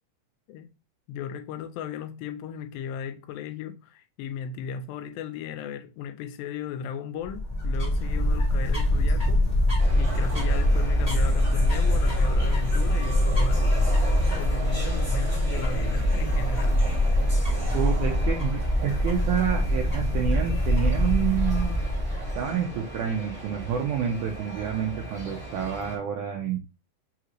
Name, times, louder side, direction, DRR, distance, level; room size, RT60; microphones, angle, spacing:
voice 1, 1.1-9.4 10.0-14.0 14.3-17.2, left 7 dB, 85° left, 2.4 m, -36 dB
sound 1, 7.2-22.5, left 1 dB, 20° left, 0.9 m, -23 dB
sound 2, 9.8-26.0, right 2 dB, 15° right, 0.9 m, -38 dB
voice 2, 17.7-21.8 22.4-26.6, right 8 dB, 90° right, 1.8 m, -28 dB
5.6 x 2.5 x 3.0 m
omnidirectional pair, 4.2 m